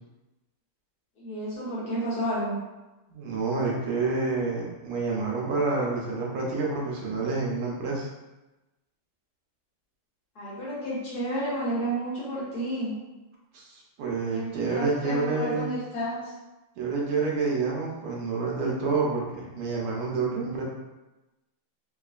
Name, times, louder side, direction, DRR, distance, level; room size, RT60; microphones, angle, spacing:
voice 1, 1.2-2.6 10.3-12.9 14.3-16.3, right 1 dB, 55° left, -8 dB, 1.3 m, -31 dB
voice 2, 3.1-8.1 13.5-15.7 16.8-20.6, right 4 dB, 80° right, -3 dB, 1.7 m, -28 dB
3.9 x 3.0 x 2.4 m, 1.0 s
omnidirectional pair, 2.4 m